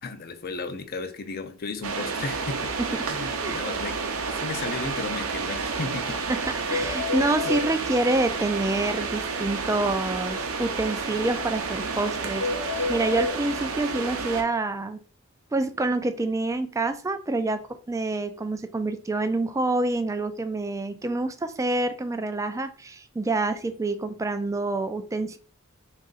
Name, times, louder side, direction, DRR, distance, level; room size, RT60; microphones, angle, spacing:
voice 1, 0.0-2.7 3.1-4.0 4.3-6.2 7.4-7.6, left 3 dB, 45° left, 0.5 m, -34 dB
sound 1, 1.8-14.4, right 4 dB, 80° right, 0.6 m, -30 dB
sound 2, 5.5-5.6 5.8-6.0 6.2-6.3 6.7-7.7 12.4-13.4, left 4 dB, 75° left, 0.9 m, -30 dB
voice 2, 6.3-15.0 15.5-25.4, right 2 dB, 15° right, 0.3 m, -27 dB
3.7 x 2.5 x 4.0 m
head